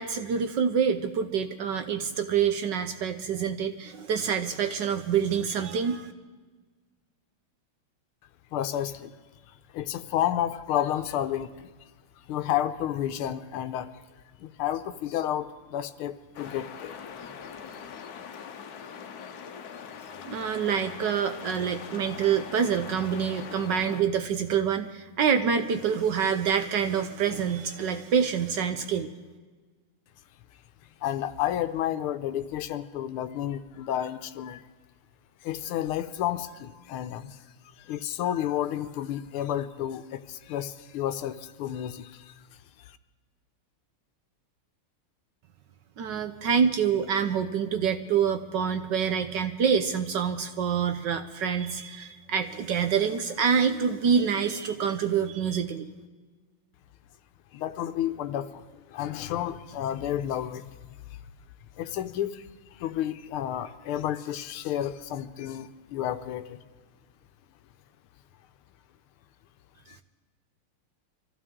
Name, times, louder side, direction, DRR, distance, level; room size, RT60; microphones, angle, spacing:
voice 1, 0.0-6.1 20.3-29.1 46.0-55.9, right 7 dB, 70° right, 8 dB, 1.1 m, -26 dB
voice 2, 8.5-9.1 9.5-11.7 12.2-13.9 14.4-17.0 31.0-34.6 35.4-37.4 37.8-42.4 42.8-43.0 57.5-61.0 61.8-66.6 69.9-70.0, left 11 dB, 80° left, 11 dB, 1.5 m, -31 dB
sound 1, 16.3-24.0, left 7 dB, 60° left, 1.1 m, -42 dB
24.0 x 14.5 x 3.7 m, 1.4 s
omnidirectional pair, 2.4 m